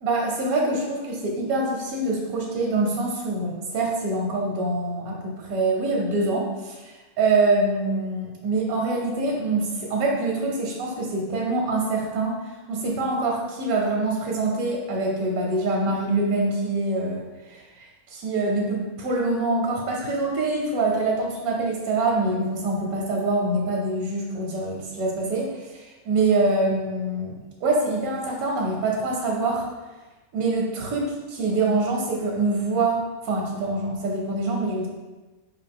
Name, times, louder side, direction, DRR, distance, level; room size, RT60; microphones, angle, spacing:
voice 1, 0.0-12.3 12.7-17.2 17.5-29.7 30.3-34.9, right 2 dB, 85° right, -1 dB, 1.2 m, -25 dB
4.8 x 2.5 x 3.5 m, 1.2 s
omnidirectional pair, 1.5 m